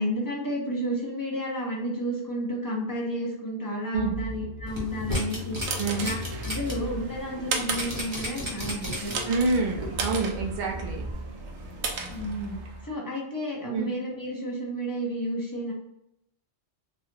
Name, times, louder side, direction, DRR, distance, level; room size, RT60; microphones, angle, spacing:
voice 1, 0.0-5.6 6.0-6.2 6.4-9.1 12.1-15.7, equal, 20° left, -3 dB, 0.7 m, -31 dB
Bass guitar, 3.9-7.5 8.1-8.7 9.0-11.1, left 1 dB, 85° left, 1.2 m, -39 dB
sound 1, 4.7-6.7 7.1-7.2 7.7-9.3 9.8-9.9, equal, 30° right, 0.8 m, -33 dB
sound 2, 5.2-12.9, right 3 dB, 75° right, 0.9 m, -35 dB
voice 2, 9.2-11.1 13.7-13.9, right 3 dB, 60° right, 0 dB, 0.5 m, -27 dB
3.2 x 2.3 x 2.8 m, 0.80 s
omnidirectional pair, 1.2 m